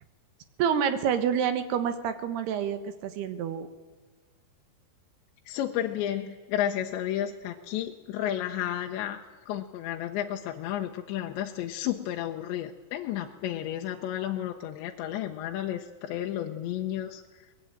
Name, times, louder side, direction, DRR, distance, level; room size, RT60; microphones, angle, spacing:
voice 1, 0.6-3.7, right 8 dB, 70° right, 10 dB, 3.0 m, -28 dB
voice 2, 5.5-17.5, left 11 dB, 75° left, 3 dB, 3.1 m, -32 dB
22.5 x 21.0 x 8.9 m, 1.3 s
omnidirectional pair, 5.5 m